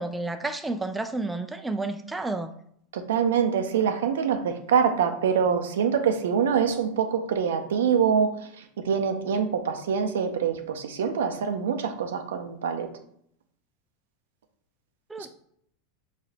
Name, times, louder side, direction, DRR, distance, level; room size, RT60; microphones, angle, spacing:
voice 1, 0.0-2.5 15.1-15.3, right 2 dB, 10° right, 0.3 m, -31 dB
voice 2, 2.9-12.9 15.2-15.3, right 7 dB, 80° right, 0.5 m, -25 dB
4.1 x 2.5 x 4.1 m
hypercardioid pair, 105°, 0 cm